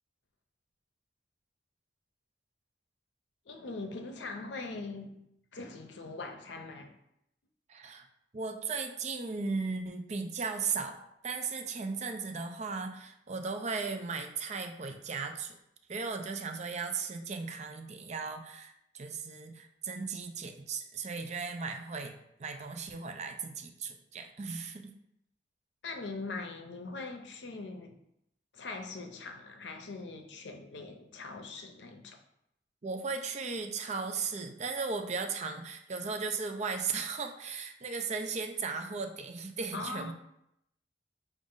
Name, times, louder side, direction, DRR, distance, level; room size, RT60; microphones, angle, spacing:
voice 1, 3.5-5.2 5.5-6.9 25.8-28.0 28.5-32.2 39.7-40.1, left 3 dB, 75° left, 5 dB, 0.6 m, -41 dB
voice 2, 7.7-8.1 8.3-15.6 15.9-24.9 32.8-40.1, right 4 dB, 40° right, 5 dB, 0.5 m, -36 dB
5.1 x 2.5 x 3.7 m, 0.79 s
head